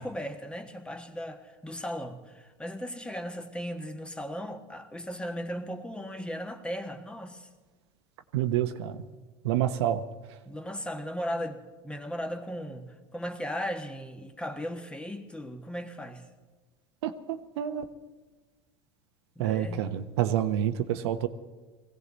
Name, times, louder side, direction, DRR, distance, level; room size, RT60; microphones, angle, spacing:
voice 1, 0.0-7.5 10.4-16.2 19.4-19.9, equal, 5° left, 6 dB, 1.4 m, -37 dB
voice 2, 8.3-9.0 9.4-10.0 17.0-17.8 19.4-21.3, right 11 dB, 80° right, 9 dB, 1.0 m, -28 dB
21.0 x 16.0 x 4.1 m, 1.3 s
supercardioid pair, 110°, 14 cm